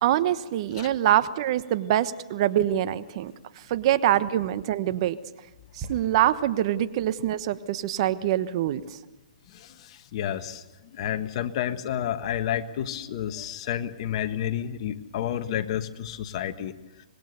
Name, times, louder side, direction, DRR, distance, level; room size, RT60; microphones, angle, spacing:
voice 1, 0.0-5.2 5.7-9.0, right 12 dB, 45° right, 13 dB, 1.1 m, -25 dB
sound 1, 5.8-9.7 10.0-10.1, right 3 dB, 15° right, 5.9 m, -45 dB
voice 2, 9.5-10.6 10.9-16.7, left 10 dB, 45° left, 9 dB, 1.5 m, -30 dB
25.5 x 20.5 x 6.8 m, 1.1 s
hypercardioid pair, 140°, 4 cm